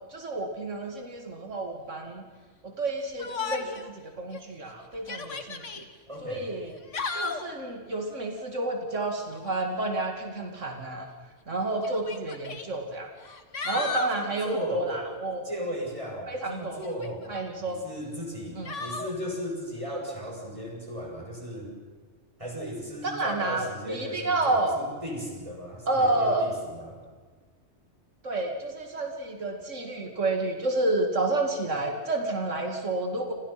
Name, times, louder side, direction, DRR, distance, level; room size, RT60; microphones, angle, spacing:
voice 1, 0.1-2.2 2.6-5.8 6.2-6.7 7.1-11.1 11.5-13.1 13.6-15.4 16.3-16.8 17.3-17.8 18.6-18.8 23.0-24.7 25.9-26.6 28.2-33.3, right 2 dB, 90° right, 3 dB, 2.8 m, -30 dB
Yell, 3.2-3.9 4.3-4.4 4.9-5.8 6.7-7.5 9.3-9.7 10.9-11.0 11.8-12.7 13.2-14.2 16.8-17.5 18.7-19.1, left 4 dB, 80° left, 2.2 m, -35 dB
voice 2, 6.1-6.5 13.7-15.0 15.4-17.4 17.6-21.7 22.4-27.0, equal, 25° right, -1 dB, 7.5 m, -36 dB
30.0 x 27.5 x 6.0 m, 1.5 s
omnidirectional pair, 1.2 m